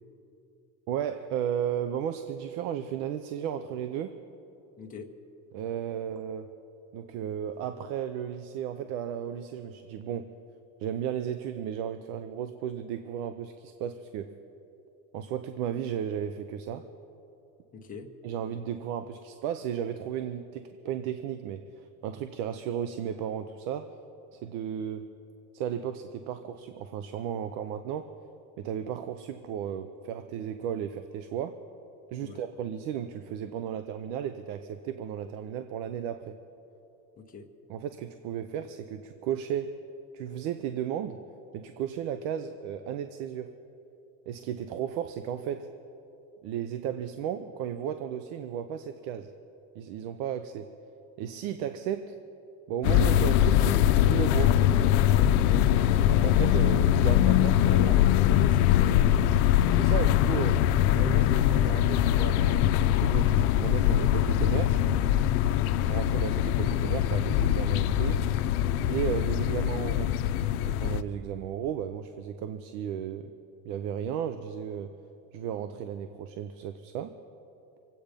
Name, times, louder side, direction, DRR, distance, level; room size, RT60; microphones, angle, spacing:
voice 1, 0.9-4.2 5.5-6.5 6.9-10.3 10.8-14.4 15.1-16.9 18.2-23.9 24.3-25.1 25.5-28.1 28.6-31.6 32.1-36.4 37.7-39.7 40.1-41.2 41.5-43.5 44.3-45.7 46.4-49.3 49.7-50.7 51.2-52.1 52.7-54.6 56.0-57.9 59.7-60.6 60.9-64.8 65.9-68.2 68.9-70.1 70.7-73.3 73.6-74.9 75.3-77.1, right 9 dB, 70° right, 10 dB, 0.8 m, -34 dB
voice 2, 4.8-5.1 17.7-18.1 32.2-32.4 37.2-37.5 55.3-55.6 57.7-59.4, left 4 dB, 20° left, 1 dB, 1.2 m, -39 dB
sound 1, 52.8-71.0, left 11 dB, 85° left, 0.7 m, -23 dB
26.0 x 8.7 x 5.2 m, 2.9 s
cardioid pair, 145°, 43 cm